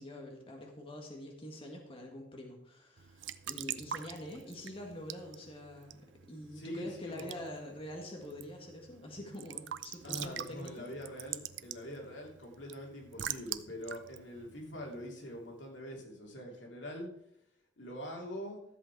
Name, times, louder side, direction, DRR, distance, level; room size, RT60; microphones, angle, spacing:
voice 1, 0.0-6.0 6.3-10.9, left 1 dB, 30° left, 1 dB, 1.8 m, -45 dB
Raindrop / Drip / Trickle dribble, 3.0-15.4, right 10 dB, 85° right, 0.5 m, -45 dB
voice 2, 6.5-7.4 10.0-17.1 17.8-18.6, equal, 85° left, 0 dB, 2.9 m, -43 dB
13.5 x 7.8 x 4.7 m, 0.77 s
head